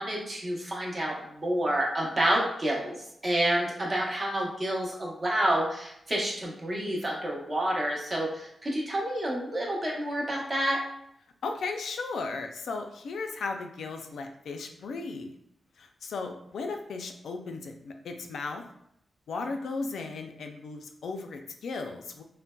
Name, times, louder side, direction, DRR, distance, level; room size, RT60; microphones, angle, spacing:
voice 1, 0.0-10.8, right 1 dB, 25° right, -3 dB, 0.7 m, -29 dB
voice 2, 11.4-15.3 15.8-18.6 19.3-22.2, left 4 dB, 85° left, 4 dB, 0.4 m, -36 dB
3.8 x 2.1 x 2.2 m, 0.75 s
wide cardioid pair, 170°, 0 cm